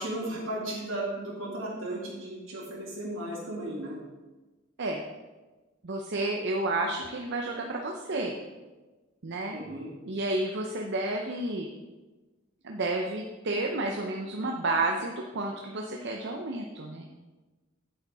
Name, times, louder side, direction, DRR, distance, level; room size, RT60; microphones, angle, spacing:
voice 1, 0.0-4.0 9.5-9.9, right 1 dB, 80° right, -3 dB, 2.5 m, -35 dB
voice 2, 5.8-8.4 9.2-9.6 10.0-11.7 12.6-17.1, right 2 dB, 60° right, 1 dB, 0.7 m, -31 dB
8.2 x 8.1 x 3.6 m, 1.2 s
head